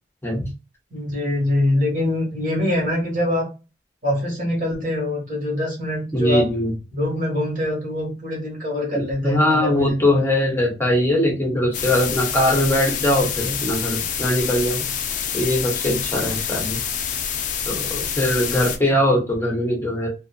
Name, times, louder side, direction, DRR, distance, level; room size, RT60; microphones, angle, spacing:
voice 1, 0.9-3.5 4.0-6.5 6.9-9.8, left 1 dB, 45° right, -3 dB, 1.4 m, -24 dB
voice 2, 6.1-6.8 8.9-14.9 15.3-16.8 17.7-20.1, left 1 dB, 15° left, -1 dB, 0.7 m, -21 dB
sound 1, 11.7-18.8, left 8 dB, 40° left, 0.3 m, -27 dB
2.6 x 2.3 x 2.3 m, 0.29 s
head